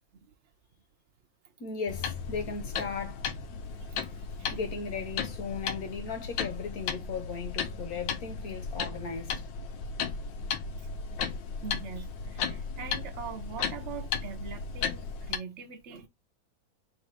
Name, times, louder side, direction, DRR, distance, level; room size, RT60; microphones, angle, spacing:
voice 1, 1.6-3.3 4.5-9.8, left 5 dB, 55° left, 1.3 m, -37 dB
sound 1, 1.9-15.4, left 6 dB, 75° left, 1.4 m, -35 dB
voice 2, 3.9-4.6 11.6-16.1, right 6 dB, 50° right, 0.9 m, -43 dB
4.1 x 2.6 x 4.6 m
omnidirectional pair, 2.1 m